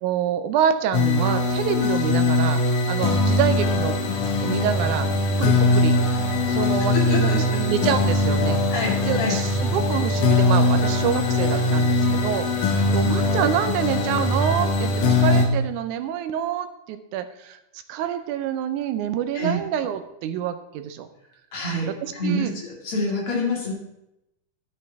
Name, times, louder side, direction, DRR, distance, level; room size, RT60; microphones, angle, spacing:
voice 1, 0.0-2.6 2.9-4.0 4.4-5.1 5.4-6.0 6.5-8.6 9.0-17.6 17.9-21.1 21.9-22.5, right 9 dB, 75° right, 9 dB, 2.0 m, -27 dB
sound 1, 0.9-15.5, left 2 dB, 80° left, 2.9 m, -21 dB
voice 2, 6.9-7.6 8.7-9.3 19.3-19.6 21.5-23.7, left 1 dB, 45° left, -2 dB, 3.1 m, -27 dB
11.5 x 8.3 x 3.5 m, 0.86 s
omnidirectional pair, 3.7 m